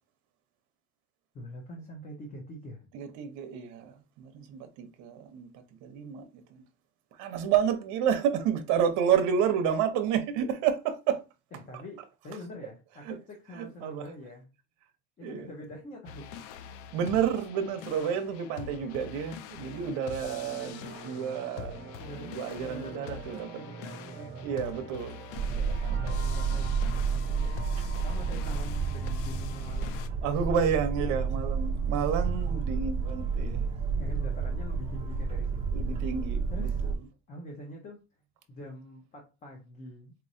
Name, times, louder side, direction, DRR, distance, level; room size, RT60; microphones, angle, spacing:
voice 1, 1.3-2.9 11.5-14.5 15.2-16.3 22.0-24.3 25.9-27.5 28.0-30.3 32.2-32.4 33.9-35.7 36.5-36.8 37.3-38.0 38.5-40.1, equal, 20° left, 0.7 m, -44 dB
voice 2, 2.9-5.5 5.8-6.4 7.2-11.2 13.1-13.2 13.5-14.1 15.2-15.5 16.9-23.5 24.4-25.2 25.5-26.2 30.2-33.7 35.7-36.9, right 8 dB, 55° right, 0.8 m, -30 dB
sound 1, 16.1-30.1, left 8 dB, 75° left, 0.5 m, -44 dB
sound 2, 19.6-29.1, right 6 dB, 35° right, 1.1 m, -47 dB
Boat Water vehicle, 25.3-37.0, right 5 dB, 20° right, 0.6 m, -30 dB
4.4 x 3.0 x 2.6 m
cardioid pair, 165°, 35 cm